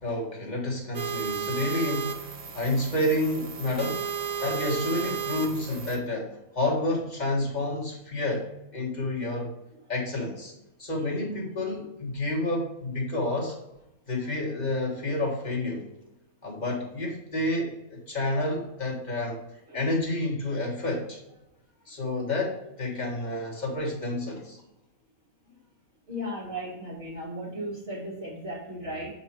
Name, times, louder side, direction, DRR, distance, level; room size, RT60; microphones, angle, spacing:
voice 1, 0.0-4.0 4.4-6.3 6.5-8.4 8.7-9.5 9.9-10.5 10.8-13.5 14.1-15.8 16.4-19.4 19.7-21.2 21.9-24.6, left 2 dB, 30° left, -2 dB, 1.7 m, -29 dB
sound 1, 0.9-6.0, right 7 dB, 85° right, 1.4 m, -34 dB
voice 2, 26.1-29.1, equal, 40° right, -10 dB, 2.3 m, -36 dB
7.3 x 4.2 x 4.4 m, 0.89 s
omnidirectional pair, 1.5 m